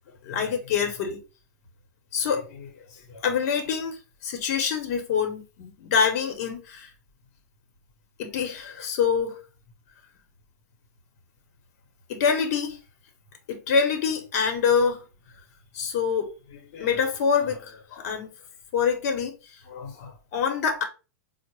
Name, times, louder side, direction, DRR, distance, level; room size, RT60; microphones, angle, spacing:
voice 1, 0.2-1.2 2.1-6.9 8.2-9.4 12.1-12.8 13.5-15.0 15.7-18.3 18.7-20.8, left 6 dB, 55° left, 1.0 m, -26 dB
4.5 x 2.1 x 3.1 m
hypercardioid pair, 125°, 10 cm